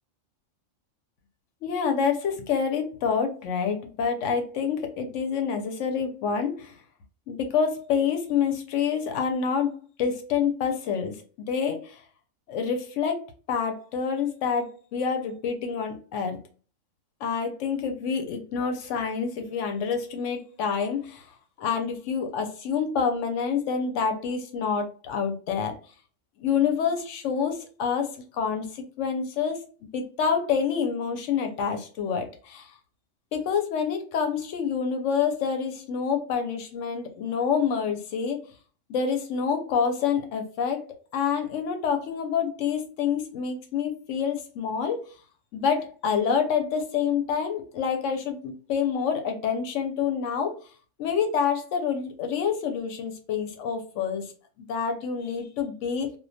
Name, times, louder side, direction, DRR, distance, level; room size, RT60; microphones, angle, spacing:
voice 1, 1.6-6.8 7.3-9.7 10.0-11.2 11.5-12.0 12.5-16.4 17.2-21.3 21.6-25.7 26.4-29.6 29.9-32.7 33.3-38.4 38.9-40.8 41.1-45.0 45.5-50.5 51.0-54.3 54.7-56.1, left 6 dB, 70° left, 5 dB, 0.9 m, -27 dB
2.2 x 2.2 x 2.6 m, 0.38 s
omnidirectional pair, 1.4 m